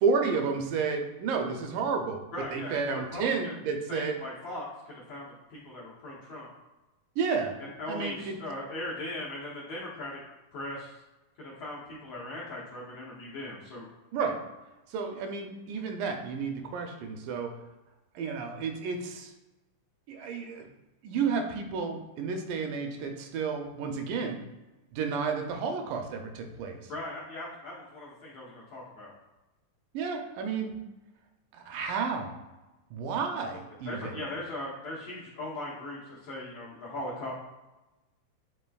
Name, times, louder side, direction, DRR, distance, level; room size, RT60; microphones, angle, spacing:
voice 1, 0.0-2.2 2.5-4.2 7.2-7.6 7.9-8.4 14.1-14.4 14.9-17.5 18.2-19.3 20.1-20.7 21.0-24.4 24.9-26.9 29.9-30.7 31.5-32.3 32.9-34.1, right 5 dB, 85° right, 4 dB, 2.1 m, -31 dB
voice 2, 2.3-3.6 3.9-6.5 7.6-10.2 10.5-11.0 11.4-13.9 26.9-29.1 33.9-37.3, left 1 dB, 70° left, -6 dB, 1.6 m, -39 dB
7.6 x 2.9 x 2.3 m, 1.0 s
omnidirectional pair, 3.7 m